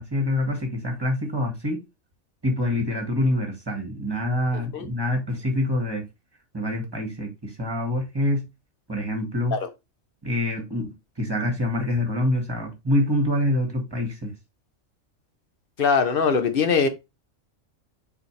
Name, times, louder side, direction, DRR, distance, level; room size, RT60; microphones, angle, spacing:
voice 1, 0.0-1.8 2.4-6.0 6.5-8.5 8.9-9.6 10.2-14.3, left 1 dB, 20° right, 1.9 m, -26 dB
voice 2, 15.8-16.9, left 5 dB, 45° left, 1.0 m, -21 dB
6.7 x 4.9 x 3.3 m
omnidirectional pair, 1.4 m